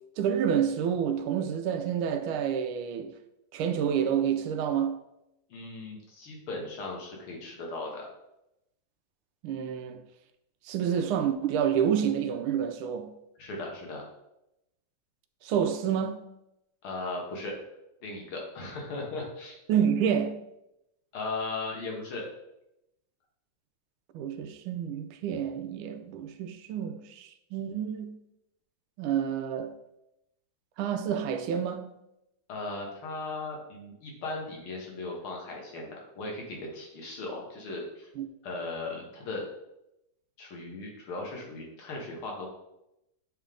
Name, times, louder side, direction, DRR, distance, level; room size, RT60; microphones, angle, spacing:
voice 1, 0.2-3.1 3.5-5.0 9.4-10.0 10.6-13.1 15.4-16.2 19.7-20.4 24.1-28.2 29.0-29.7 30.8-31.9 38.2-38.3, right 8 dB, 85° right, 1.5 m, -28 dB
voice 2, 5.5-8.1 13.4-14.0 16.8-17.6 18.0-19.6 21.1-22.2 32.5-38.1 38.4-39.4 40.4-42.5, left 2 dB, 85° left, 2.2 m, -37 dB
8.2 x 3.5 x 3.7 m
omnidirectional pair, 2.3 m